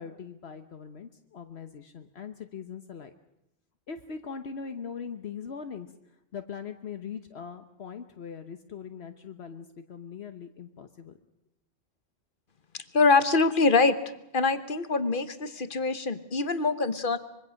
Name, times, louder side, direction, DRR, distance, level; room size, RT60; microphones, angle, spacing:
voice 1, 0.0-3.1 3.9-5.9 6.3-11.2, left 6 dB, 70° left, 7 dB, 1.3 m, -41 dB
voice 2, 12.7-14.0 14.3-17.2, left 3 dB, 50° left, 12 dB, 1.3 m, -24 dB
25.0 x 23.0 x 6.4 m, 0.85 s
omnidirectional pair, 1.1 m